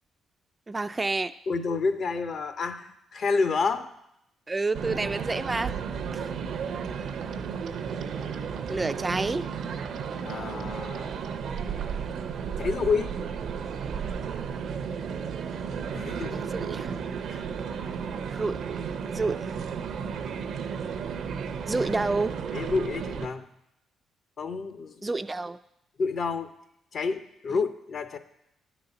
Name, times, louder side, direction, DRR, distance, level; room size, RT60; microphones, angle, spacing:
voice 1, 0.7-1.3 4.5-5.8 6.1-6.3 8.7-9.5 16.3-16.9 18.3-18.6 19.1-19.5 21.7-22.4 25.0-25.6 27.5-27.6, right 3 dB, 20° right, 11 dB, 0.3 m, -29 dB
voice 2, 1.5-3.9 10.2-11.2 12.6-13.1 15.9-16.4 17.3-17.5 22.5-23.5 24.4-25.1 26.0-26.5 26.9-28.2, left 4 dB, 55° left, 9 dB, 0.7 m, -29 dB
sound 1, 4.7-23.3, right 6 dB, 70° right, 0.6 m, -33 dB
sound 2, 7.1-12.0, right 8 dB, 85° right, 0.9 m, -49 dB
10.0 x 4.1 x 6.8 m, 0.80 s
cardioid pair, 90°, 0 cm